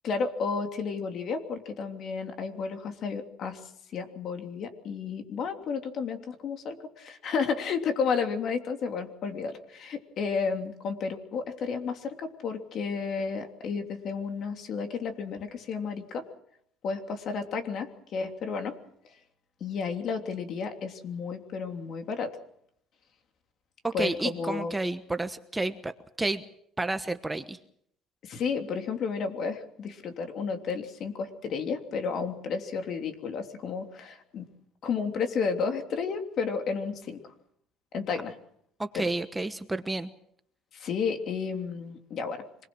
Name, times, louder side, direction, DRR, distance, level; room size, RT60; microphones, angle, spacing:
voice 1, 0.0-3.6 3.9-16.3 16.8-18.8 19.0-19.1 19.6-22.4 23.9-24.7 28.2-34.5 34.8-37.2 37.9-38.4 38.9-39.1 40.7-42.4, left 5 dB, 50° left, 5 dB, 3.2 m, -32 dB
voice 2, 23.8-25.9 26.2-26.4 26.8-27.6 38.8-40.1, right 2 dB, 10° right, 9 dB, 1.1 m, -30 dB
26.0 x 21.0 x 6.3 m, 0.69 s
cardioid pair, 115°, 0 cm